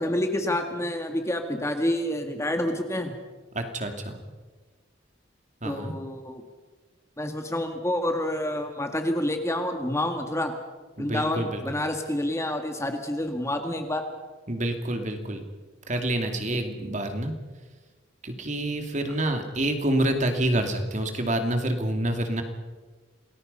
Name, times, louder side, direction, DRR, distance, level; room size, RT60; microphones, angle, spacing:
voice 1, 0.0-3.1 5.6-6.4 7.2-10.5 11.0-14.0, left 1 dB, 15° left, 5 dB, 1.9 m, -28 dB
voice 2, 3.5-4.2 5.6-6.0 11.0-11.6 14.5-15.4 15.9-17.4 18.2-22.4, right 1 dB, 35° right, 5 dB, 2.5 m, -27 dB
28.0 x 20.5 x 5.5 m, 1.3 s
head